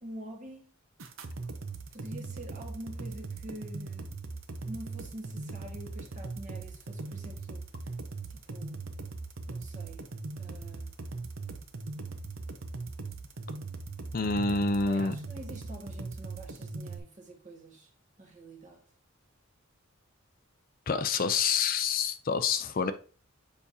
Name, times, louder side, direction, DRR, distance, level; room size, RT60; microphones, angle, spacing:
voice 1, 0.0-0.7 1.9-4.1 4.6-7.7 8.3-8.8 9.5-10.0 10.4-10.9 14.8-17.9 18.2-18.8, right 1 dB, 35° right, 1.5 m, -46 dB
sound 1, 1.0-17.0, right 3 dB, 75° right, 0.8 m, -40 dB
voice 2, 14.1-15.1 20.9-22.9, left 5 dB, 45° left, 0.4 m, -27 dB
7.0 x 5.1 x 2.8 m
head